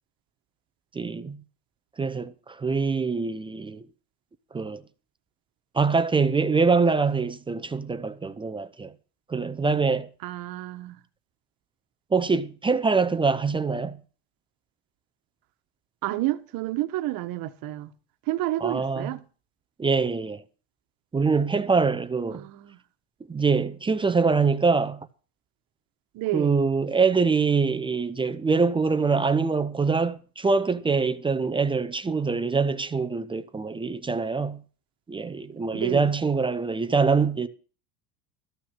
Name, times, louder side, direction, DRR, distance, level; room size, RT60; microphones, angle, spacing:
voice 1, 0.9-1.4 2.0-3.8 4.5-4.8 5.7-8.9 9.3-10.1 12.1-14.0 18.6-19.2 19.8-20.4 21.1-22.4 23.3-25.0 26.3-34.6 35.1-37.5, right 4 dB, 10° right, 0.5 m, -24 dB
voice 2, 10.2-11.0 16.0-17.9 18.3-19.2 22.3-22.8 26.1-26.6 35.7-36.1, right 16 dB, 50° right, 1.3 m, -30 dB
13.5 x 6.2 x 7.3 m
supercardioid pair, 130°, 43 cm